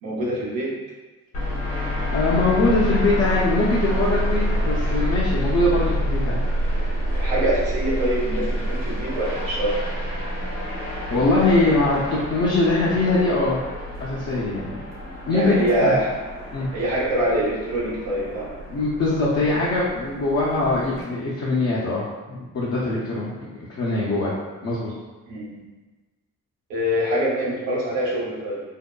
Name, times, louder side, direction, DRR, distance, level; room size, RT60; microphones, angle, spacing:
voice 1, 0.0-0.7 7.2-9.7 15.3-16.1 16.7-18.5 25.3-25.6 26.7-28.6, right 1 dB, 90° right, -5 dB, 0.7 m, -24 dB
sound 1, 1.3-21.0, equal, 80° left, 0.9 m, -27 dB
voice 2, 2.1-6.4 11.1-13.6 14.0-14.8 15.3-15.9 16.5-16.7 18.7-23.3 23.8-24.9, left 2 dB, 45° left, -6 dB, 0.6 m, -22 dB
2.7 x 2.1 x 2.2 m, 1.2 s
supercardioid pair, 45°, 35 cm